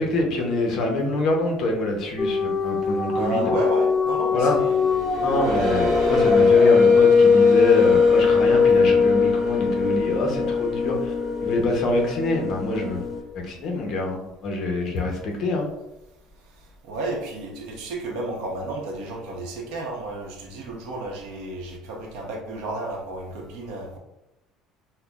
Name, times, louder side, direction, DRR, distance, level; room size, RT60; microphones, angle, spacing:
voice 1, 0.0-3.5 4.3-4.6 5.2-11.1 11.4-13.0 13.3-15.7, left 2 dB, 45° left, 1 dB, 0.7 m, -25 dB
sound 1, 2.2-7.4, left 4 dB, 20° left, 0.3 m, -25 dB
voice 2, 3.1-5.6 16.8-24.0, right 1 dB, 70° right, 1 dB, 0.8 m, -32 dB
sound 2, 4.8-13.2, left 5 dB, 30° right, 0.9 m, -19 dB
5.5 x 2.1 x 2.3 m, 0.91 s
cardioid pair, 170°, 0 cm